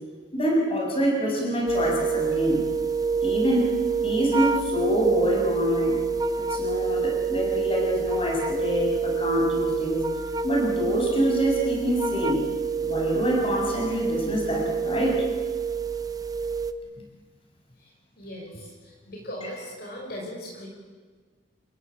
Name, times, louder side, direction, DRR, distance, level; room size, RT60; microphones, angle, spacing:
voice 1, 0.3-2.6 3.2-3.7 4.0-6.0 6.4-10.0 10.4-12.5 12.8-15.2, equal, 30° left, -1 dB, 7.1 m, -25 dB
sound 1, 1.7-16.7, right 5 dB, 20° right, 0.8 m, -27 dB
voice 2, 17.8-20.7, equal, 55° left, -1 dB, 5.7 m, -39 dB
30.0 x 16.0 x 8.6 m, 1.5 s
head